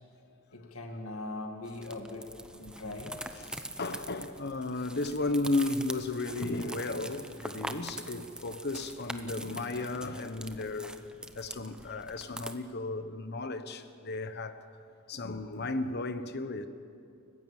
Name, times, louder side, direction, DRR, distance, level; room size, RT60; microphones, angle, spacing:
voice 1, 0.5-3.2, left 2 dB, 75° left, 2.1 m, -41 dB
sound 1, 1.6-12.5, right 1 dB, 5° right, 0.9 m, -43 dB
voice 2, 3.4-11.0 11.3-14.6 15.1-16.7, left 2 dB, 50° left, 1.2 m, -34 dB
29.5 x 15.5 x 7.4 m
head